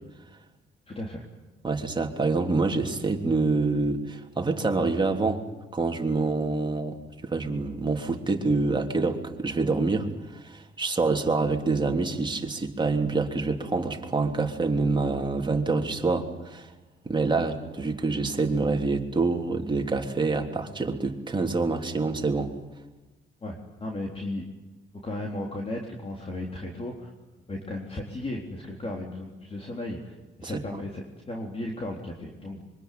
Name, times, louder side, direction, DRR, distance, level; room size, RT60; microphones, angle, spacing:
voice 1, 0.9-1.3 23.4-24.4 25.0-27.1 27.5-32.6, left 1 dB, 30° left, 0 dB, 3.9 m, -35 dB
voice 2, 1.6-5.4 5.7-7.0 7.2-16.7 17.0-22.5 30.4-30.8, right 3 dB, 25° right, 3 dB, 3.2 m, -26 dB
25.0 x 24.0 x 9.5 m, 1.1 s
cardioid pair, 90°, 20 cm